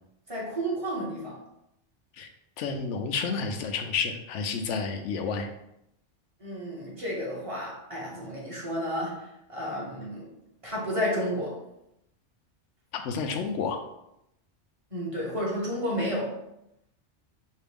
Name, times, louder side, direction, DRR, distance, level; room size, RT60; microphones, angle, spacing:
voice 1, 0.3-1.3 6.4-9.2 9.5-10.3 10.6-11.6 14.9-16.3, equal, 30° right, -5 dB, 1.3 m, -31 dB
voice 2, 2.6-5.5 12.9-13.8, left 5 dB, 90° left, 5 dB, 0.9 m, -30 dB
5.3 x 2.5 x 3.5 m, 0.83 s
omnidirectional pair, 1.2 m